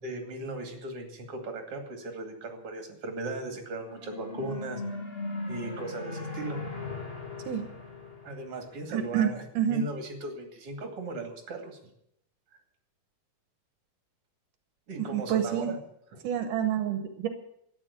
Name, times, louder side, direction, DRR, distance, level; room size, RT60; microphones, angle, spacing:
voice 1, 0.0-4.8 5.5-6.6 8.2-11.8 14.9-15.8 16.1-16.2, right 2 dB, 45° right, 3 dB, 3.3 m, -37 dB
sound 1, 3.7-9.2, left 2 dB, 25° left, 1.6 m, -38 dB
voice 2, 8.9-9.3 9.6-9.8 14.9-15.7 16.2-17.3, right 9 dB, 80° right, 7 dB, 2.7 m, -28 dB
13.5 x 9.6 x 8.2 m, 0.74 s
omnidirectional pair, 3.6 m